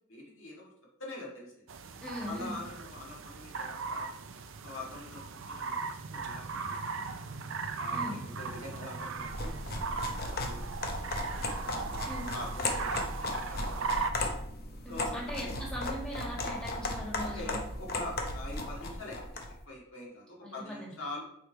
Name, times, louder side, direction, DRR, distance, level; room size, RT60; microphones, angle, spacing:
voice 1, 0.1-0.7 1.0-1.5 2.2-4.1 4.6-5.8 6.1-7.2 7.7-10.8 11.6-14.1 14.9-15.5 17.2-21.2, left 2 dB, 60° left, -3 dB, 2.0 m, -45 dB
sound 1, 1.7-14.1, right 4 dB, 60° right, 0.5 m, -38 dB
voice 2, 2.0-2.6 7.9-8.2 12.1-12.3 15.0-17.6 20.4-20.9, equal, 5° left, -4 dB, 1.7 m, -40 dB
sound 2, 9.2-19.5, left 2 dB, 45° left, 0.8 m, -36 dB
5.1 x 4.7 x 4.5 m, 0.71 s
head